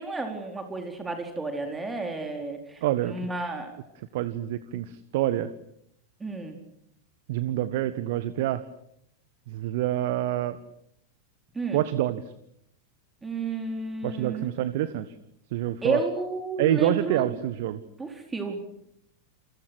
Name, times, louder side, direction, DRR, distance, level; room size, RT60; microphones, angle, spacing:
voice 1, 0.0-3.8 6.2-6.6 11.5-11.8 13.2-14.5 15.8-17.4 18.0-18.6, right 3 dB, 15° right, 4 dB, 4.5 m, -32 dB
voice 2, 2.8-3.1 4.1-5.5 7.3-8.6 9.5-10.6 11.7-12.2 14.0-15.1 15.5-16.0 16.6-17.8, right 13 dB, 50° right, 14 dB, 1.5 m, -27 dB
29.5 x 29.0 x 6.4 m, 0.74 s
figure-of-eight pair, 90°, 0 cm